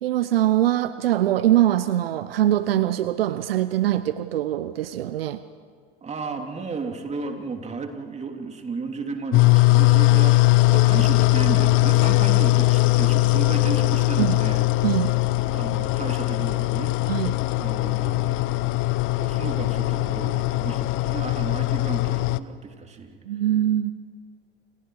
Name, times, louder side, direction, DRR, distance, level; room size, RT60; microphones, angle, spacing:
voice 1, 0.0-5.4 14.2-14.4 14.8-15.2 17.1-17.4 23.3-23.9, right 12 dB, 70° right, 13 dB, 0.9 m, -22 dB
voice 2, 6.0-14.6 15.4-17.1 17.6-18.8 19.1-23.2, right 4 dB, 20° right, 4 dB, 3.1 m, -33 dB
sound 1, 9.3-22.4, left 21 dB, 45° left, 0.8 m, -20 dB
29.5 x 28.5 x 4.9 m, 2.1 s
hypercardioid pair, 85°, 30 cm